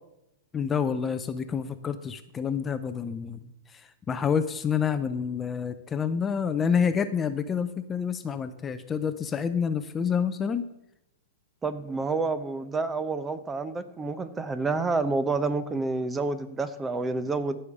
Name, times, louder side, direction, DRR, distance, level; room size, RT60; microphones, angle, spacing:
voice 1, 0.5-10.6, left 7 dB, 20° left, 10 dB, 0.6 m, -28 dB
voice 2, 11.6-17.6, right 3 dB, 15° right, 13 dB, 0.7 m, -29 dB
15.0 x 5.7 x 4.9 m, 0.85 s
hypercardioid pair, 130°, 0 cm